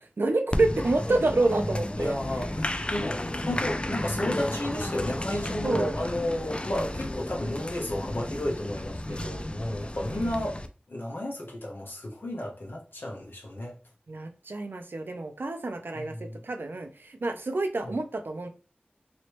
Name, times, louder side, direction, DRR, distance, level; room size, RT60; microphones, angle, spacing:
voice 1, 0.2-2.1 5.6-5.9 6.7-6.9 9.1-9.4 10.1-10.3 14.1-18.5, right 2 dB, 85° right, 0.5 m, -28 dB
Applause, 0.5-10.7, left 1 dB, 30° left, 0.4 m, -33 dB
voice 2, 2.0-10.6 10.9-13.7 15.9-16.4 17.8-17.9, left 1 dB, 85° left, 1.1 m, -32 dB
3.1 x 2.9 x 3.1 m
wide cardioid pair, 45°, 3 cm